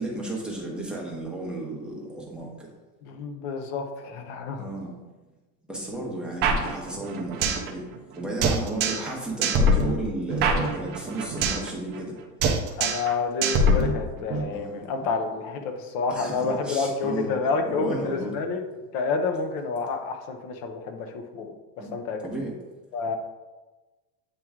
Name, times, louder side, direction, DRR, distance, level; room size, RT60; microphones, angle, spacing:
voice 1, 0.0-2.7 4.6-4.9 5.7-7.8 8.1-12.1 14.5-14.8 16.1-17.3 17.6-18.4 21.8-21.9 22.2-22.5, right 2 dB, ahead, -3 dB, 1.0 m, -33 dB
voice 2, 3.0-4.7 12.8-18.6 18.9-21.5 21.9-22.3 22.9-23.1, left 4 dB, 45° left, 6 dB, 0.9 m, -29 dB
sound 1, 6.4-7.7 8.0-8.1 8.4-9.1 9.4-11.7 11.9-12.2 12.4-13.1 13.4-14.4, right 1 dB, 25° right, 0.3 m, -23 dB
8.5 x 3.1 x 3.6 m, 1.2 s
supercardioid pair, 140°, 48 cm